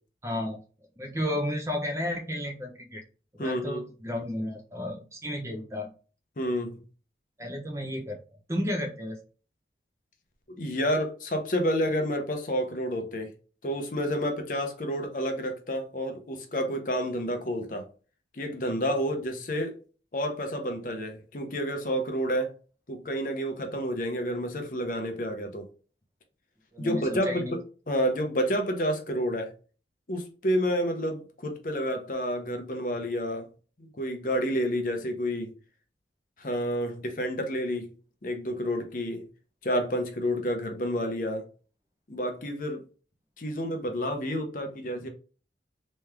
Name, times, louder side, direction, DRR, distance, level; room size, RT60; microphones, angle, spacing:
voice 1, 0.2-0.6 1.0-3.0 3.4-5.9 7.4-8.2 8.5-9.2 26.7-27.5, left 1 dB, 15° right, 0.7 m, -32 dB
voice 2, 3.4-3.8 6.4-6.7 10.5-13.3 13.6-17.9 18.3-19.7 20.1-22.5 22.9-25.6 26.8-27.6 27.9-29.5 30.1-33.5 34.0-35.5 36.4-37.9 38.2-39.2 39.6-41.4 42.1-42.8 43.4-45.1, equal, 50° left, 0.7 m, -29 dB
3.4 x 3.1 x 3.4 m
head